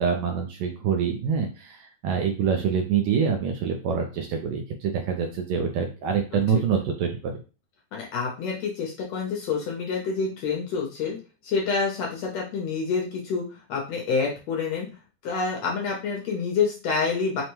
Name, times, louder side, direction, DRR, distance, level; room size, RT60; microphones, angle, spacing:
voice 1, 0.0-7.3, right 6 dB, 80° right, 3 dB, 1.7 m, -26 dB
voice 2, 7.9-11.2 11.4-14.9 15.2-17.4, left 5 dB, 70° left, -1 dB, 1.7 m, -27 dB
5.3 x 2.2 x 3.0 m, 0.32 s
omnidirectional pair, 3.6 m